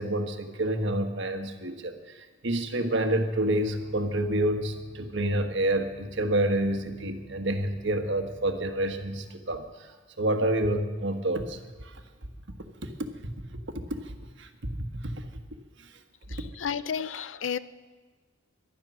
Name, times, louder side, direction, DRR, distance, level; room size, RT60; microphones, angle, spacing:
voice 1, 0.0-2.2 2.4-9.9 10.2-11.9 12.8-12.9 13.2-13.3 13.7-14.0 14.4-14.7 15.0-15.1, right 1 dB, 65° right, 6 dB, 1.4 m, -28 dB
sound 1, 1.9-2.0 3.5-9.8, equal, 10° left, 3.4 m, -52 dB
voice 2, 16.6-17.6, left 7 dB, 75° left, 15 dB, 0.5 m, -31 dB
18.5 x 12.0 x 6.2 m, 1.4 s
head